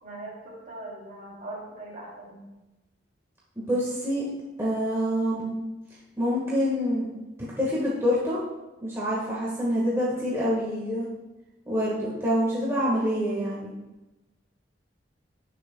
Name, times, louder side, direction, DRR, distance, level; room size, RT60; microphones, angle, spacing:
voice 1, 0.0-2.5, right 2 dB, 45° right, -3 dB, 3.0 m, -40 dB
voice 2, 3.5-4.2 4.6-5.5 6.2-7.1 7.6-8.4 8.8-11.1 11.6-13.7, equal, 15° right, -6 dB, 1.6 m, -26 dB
17.0 x 6.6 x 2.3 m, 1.0 s
head